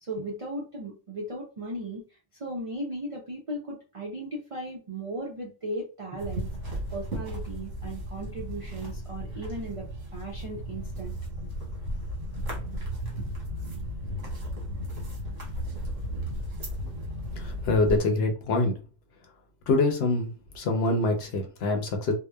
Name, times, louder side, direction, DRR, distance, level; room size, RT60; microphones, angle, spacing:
voice 1, 0.0-2.0 2.3-6.5 6.9-11.2, right 1 dB, 60° right, -1 dB, 0.3 m, -36 dB
sound 1, 6.2-18.0, equal, 75° right, 1.3 m, -35 dB
voice 2, 17.4-18.7 19.7-20.3 20.5-22.1, left 2 dB, 65° left, 3 dB, 0.8 m, -25 dB
2.8 x 2.1 x 2.2 m, 0.34 s
omnidirectional pair, 1.3 m